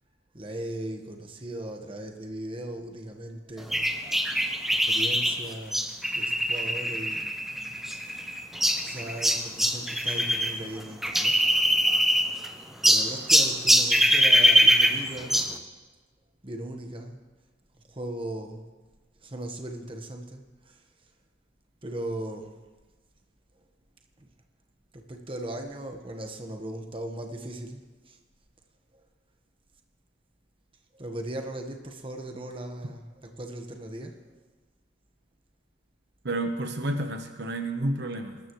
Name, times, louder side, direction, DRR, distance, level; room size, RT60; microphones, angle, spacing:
voice 1, 0.3-3.9 4.9-7.3 7.7-7.8 8.8-11.4 12.8-15.5 16.4-17.2 17.9-18.6 19.2-20.8 21.8-22.5 24.2-24.3 24.9-28.2 28.9-29.0 30.9-34.4 36.4-36.5, right 1 dB, 30° right, 4 dB, 1.3 m, -38 dB
sound 1, 3.7-10.5 10.8-12.5 12.8-15.6, equal, ahead, 1.0 m, -23 dB
voice 2, 36.2-38.4, right 1 dB, 65° right, 5 dB, 1.1 m, -30 dB
24.5 x 13.5 x 3.2 m, 1.3 s
head